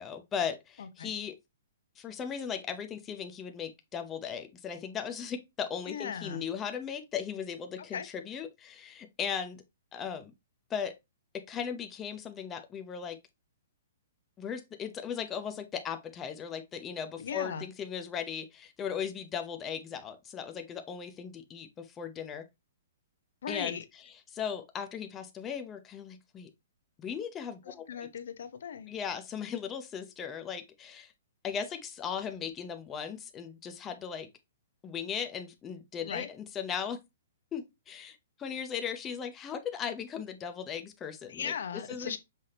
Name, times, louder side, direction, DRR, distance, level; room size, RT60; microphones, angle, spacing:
voice 1, 0.0-1.4 2.0-9.6 9.9-10.3 10.7-11.0 11.3-13.2 14.4-22.5 23.5-23.8 24.3-26.5 27.0-28.1 28.9-31.1 31.4-34.3 34.8-37.0 37.5-41.5 41.9-42.2, left 7 dB, 15° left, 0.5 m, -37 dB
voice 2, 0.8-1.1 5.9-6.4 7.9-8.1 17.2-17.6 23.4-23.8 27.6-28.9 36.0-36.3 41.3-42.2, left 7 dB, 65° left, 0.8 m, -38 dB
5.6 x 2.7 x 3.3 m
hypercardioid pair, 170°, 0 cm